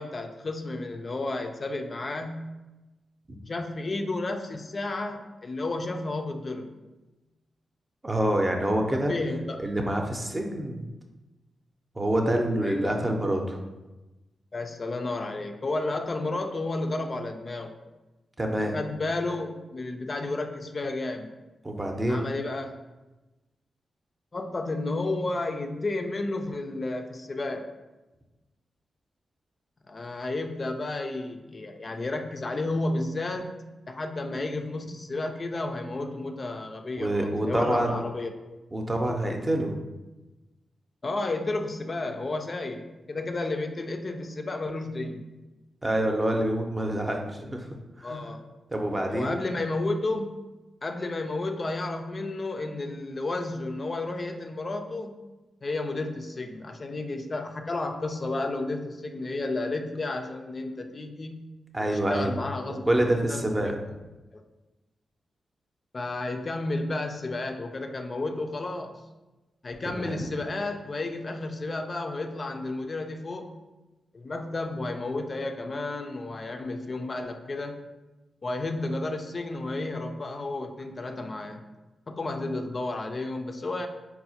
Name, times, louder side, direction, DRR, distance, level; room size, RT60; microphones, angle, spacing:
voice 1, 0.0-2.5 3.5-6.7 8.9-9.6 12.6-13.0 14.5-17.7 18.6-21.3 22.1-22.8 24.3-27.6 29.9-33.6 33.9-38.3 41.0-45.3 48.0-48.4 49.0-50.3 50.8-55.2 55.6-61.5 62.1-62.9 63.3-63.7 64.3-64.4 65.9-69.1 69.6-73.6 74.1-77.8 78.4-81.6 82.1-83.9, left 2 dB, 50° left, 5 dB, 0.3 m, -32 dB
voice 2, 8.0-9.2 9.6-10.8 12.0-13.6 18.4-18.8 21.6-22.3 37.0-38.0 38.7-39.7 45.8-47.7 48.0-48.2 48.7-49.4 61.7-62.3 62.7-63.8 69.9-70.2, right 1 dB, 30° right, 2 dB, 0.6 m, -26 dB
4.2 x 2.0 x 2.7 m, 1.1 s
supercardioid pair, 40°, 0 cm